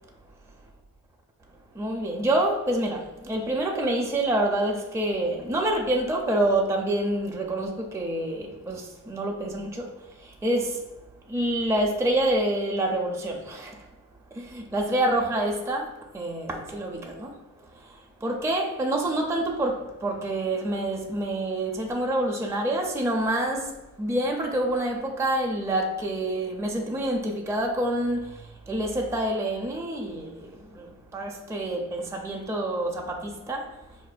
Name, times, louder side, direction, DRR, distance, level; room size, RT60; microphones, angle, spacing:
voice 1, 1.8-9.9 10.4-10.8 11.3-13.7 14.4-17.3 18.2-28.3 28.7-30.9 31.1-33.7, right 1 dB, 10° right, 0.5 m, -27 dB
3.9 x 2.5 x 2.2 m
cardioid pair, 65°, 34 cm